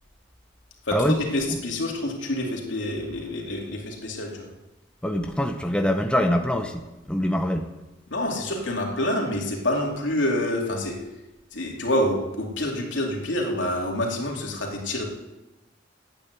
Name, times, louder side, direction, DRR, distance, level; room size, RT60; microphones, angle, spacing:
voice 1, 0.9-4.5 8.1-10.9 11.5-15.1, left 1 dB, 80° left, 0 dB, 2.8 m, -27 dB
voice 2, 5.0-7.7, equal, 5° left, 5 dB, 0.7 m, -24 dB
10.5 x 8.9 x 8.1 m, 1.0 s
head